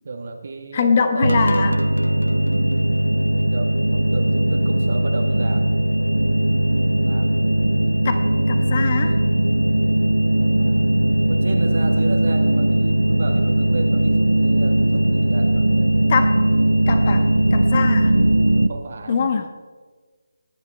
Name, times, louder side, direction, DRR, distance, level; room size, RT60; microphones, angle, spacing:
voice 1, 0.0-1.4 3.3-6.1 6.9-7.5 7.8-8.1 10.4-16.1 18.7-19.4, right 3 dB, 55° right, 4 dB, 1.5 m, -33 dB
voice 2, 0.7-1.8 8.0-9.2 16.1-16.3 16.9-18.1 19.1-19.5, left 6 dB, 40° left, 7 dB, 1.2 m, -22 dB
sound 1, 1.2-18.7, right 1 dB, 85° right, 0.8 m, -19 dB
19.0 x 10.5 x 4.5 m, 1.4 s
figure-of-eight pair, 150°, 0 cm